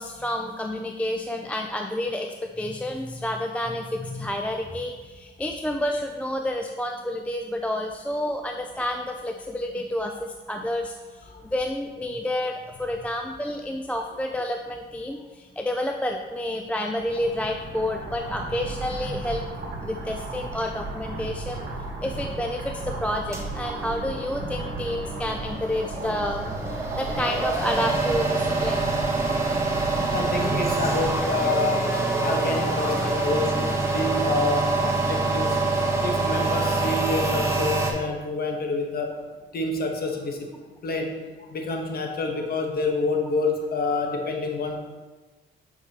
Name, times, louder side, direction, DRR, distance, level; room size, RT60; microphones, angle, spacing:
voice 1, 0.0-10.9 11.5-19.5 19.8-21.6 22.0-26.4 27.0-28.8, left 1 dB, 5° left, 3 dB, 0.3 m, -29 dB
sound 1, 17.0-31.2, right 2 dB, 60° right, 1.2 m, -35 dB
sound 2, 23.3-37.9, right 3 dB, 15° right, 1.1 m, -26 dB
voice 2, 30.1-31.8 32.2-33.7 33.9-39.1 39.5-40.5 40.8-41.1 41.4-44.8, left 3 dB, 50° left, 2 dB, 1.1 m, -28 dB
7.3 x 4.8 x 2.8 m, 1.3 s
cardioid pair, 90°, 20 cm